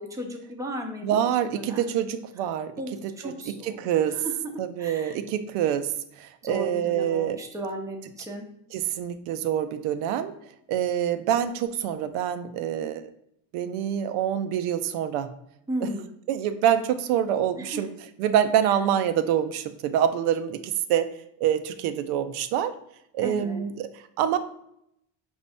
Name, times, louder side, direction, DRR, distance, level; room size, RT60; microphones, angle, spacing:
voice 1, 0.0-1.8 2.8-4.5 4.8-5.1 5.5-5.6 6.4-8.5 15.7-16.0 17.6-17.8 23.2-23.6, right 1 dB, 5° right, 2 dB, 0.5 m, -35 dB
voice 2, 1.0-2.7 3.0-4.2 4.6-7.4 8.7-10.3 10.7-13.1 13.5-15.3 15.8-15.9 16.3-17.9 18.2-21.1 21.4-22.7 23.1-24.4, right 10 dB, 85° right, 10 dB, 0.6 m, -26 dB
5.2 x 2.7 x 3.4 m, 0.75 s
cardioid pair, 115°, 50 cm